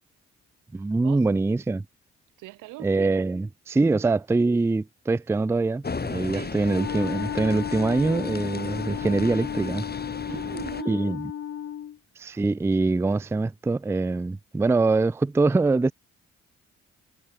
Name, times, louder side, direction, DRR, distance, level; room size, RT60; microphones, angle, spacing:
voice 1, 0.7-1.8 2.8-9.9 10.9-11.3 12.2-15.9, right 3 dB, 10° right, 0.4 m, -24 dB
voice 2, 2.4-3.0 6.3-6.6 10.3-11.0, right 21 dB, 85° right, 2.6 m, -40 dB
sound 1, 5.8-10.8, left 4 dB, 30° left, 2.1 m, -35 dB
Wind instrument woodwind instrument, 6.6-12.0, left 10 dB, 50° left, 0.8 m, -34 dB
supercardioid pair, 50°, 31 cm